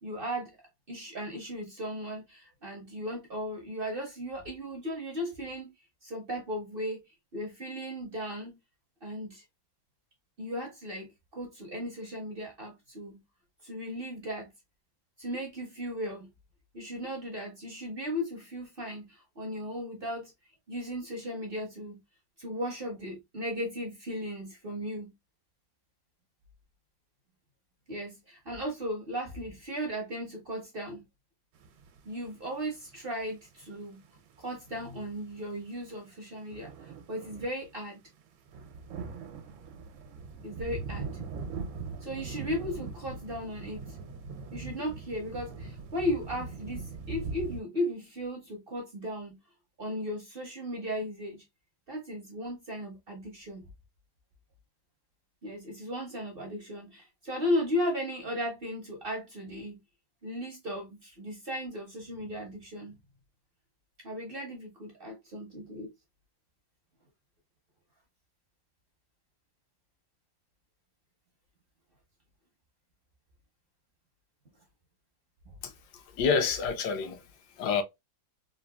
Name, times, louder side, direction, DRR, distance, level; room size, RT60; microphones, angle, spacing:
voice 1, 0.0-0.6 0.9-5.7 6.0-7.0 7.3-8.6 9.0-9.4 10.4-13.2 13.6-14.5 15.2-16.3 16.7-20.3 20.7-22.0 22.4-25.1 27.9-31.1 32.1-34.0 34.4-38.0 40.4-41.2 42.0-44.0 44.5-49.4 49.8-51.4 51.9-53.6 55.4-59.8 60.2-63.0 64.0-65.9, equal, 55° right, 0.6 m, -36 dB
sound 1, 31.6-37.7 38.2-38.3 38.5-47.6, right 4 dB, 90° right, 1.4 m, -41 dB
voice 2, 75.6-77.2 77.6-77.8, left 5 dB, 70° left, 1.2 m, -28 dB
3.9 x 2.4 x 2.2 m
omnidirectional pair, 2.1 m